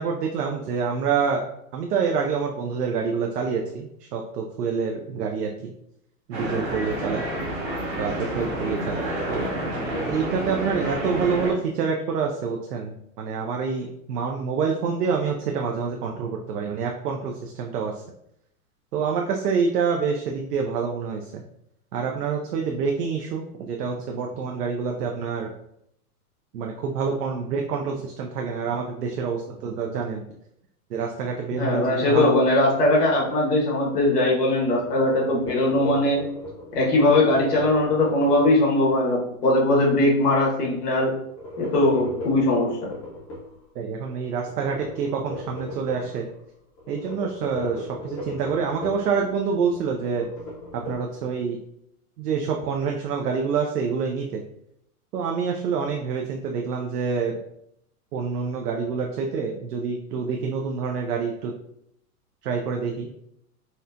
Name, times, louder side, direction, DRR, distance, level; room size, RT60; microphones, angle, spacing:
voice 1, 0.0-1.4 1.7-5.7 6.3-7.2 7.9-9.6 10.1-18.0 18.9-21.4 21.9-25.5 26.5-30.2 30.9-32.4 43.8-46.3 46.9-50.3 50.7-51.6 52.2-54.4 55.1-57.3 58.1-61.5 62.4-63.1, right 5 dB, 85° right, 1 dB, 0.6 m, -27 dB
sound 1, 6.3-11.5, right 1 dB, 25° right, 0.8 m, -29 dB
voice 2, 31.5-36.3 36.7-41.1 41.6-42.9, left 1 dB, 85° left, -2 dB, 1.4 m, -20 dB
sound 2, 32.7-34.1 34.4-39.2 41.0-43.6 44.4-46.4 46.8-49.2 49.5-50.9, left 1 dB, 25° left, 0.6 m, -38 dB
4.2 x 2.2 x 2.5 m, 0.76 s
hypercardioid pair, 155°, 46 cm